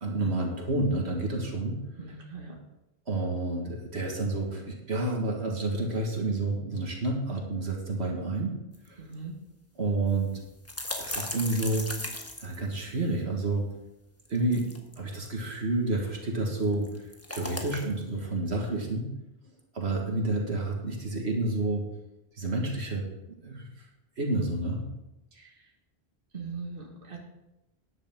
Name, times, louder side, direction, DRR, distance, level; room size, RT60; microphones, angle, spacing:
voice 1, 0.0-1.8 3.1-8.6 8.9-9.1 9.8-10.4 11.0-11.9 12.4-13.6 14.3-14.7 15.0-19.1 19.7-21.8 22.3-23.0 23.4-23.9 24.2-24.8, right 2 dB, 80° right, 0 dB, 2.1 m, -29 dB
voice 2, 2.0-2.5 9.0-9.3 25.3-25.5 26.3-27.2, right 4 dB, 55° right, -1 dB, 2.0 m, -40 dB
sound 1, 8.7-8.8 9.1-9.2 10.1-13.2 14.3-15.3 16.6-18.0, left 1 dB, 15° left, 1.3 m, -37 dB
13.0 x 10.5 x 3.7 m, 0.95 s
omnidirectional pair, 1.1 m